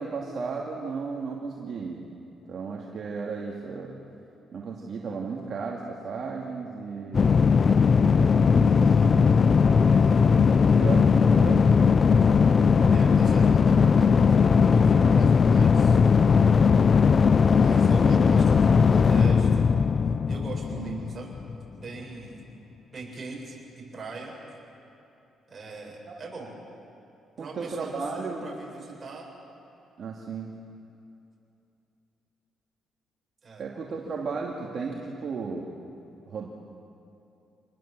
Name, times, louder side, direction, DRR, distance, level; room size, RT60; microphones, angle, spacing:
voice 1, 0.0-2.0 2.5-4.0 4.5-7.3 7.9-11.7 20.7-21.0 26.1-26.2 27.4-28.5 30.0-30.5 33.6-35.7 36.3-36.5, right 4 dB, 55° right, -2 dB, 2.6 m, -35 dB
sound 1, 7.1-21.5, left 5 dB, 40° left, 0.5 m, -19 dB
voice 2, 12.9-16.0 17.6-19.7 20.3-21.3 21.7-22.4 22.9-24.3 25.5-26.5 27.4-29.3 33.4-33.7, right 3 dB, 35° right, -2 dB, 7.5 m, -41 dB
27.0 x 19.5 x 7.7 m, 2.7 s
cardioid pair, 90°, 0 cm